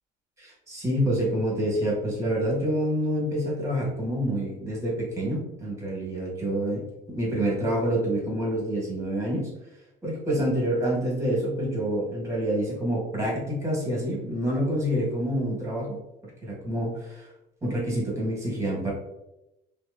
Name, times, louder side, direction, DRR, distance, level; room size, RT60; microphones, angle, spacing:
voice 1, 0.4-9.5 10.0-16.0 16.4-17.3 17.6-18.9, right 1 dB, 15° right, -4 dB, 1.1 m, -27 dB
2.7 x 2.0 x 2.3 m, 0.90 s
cardioid pair, 110°, 17 cm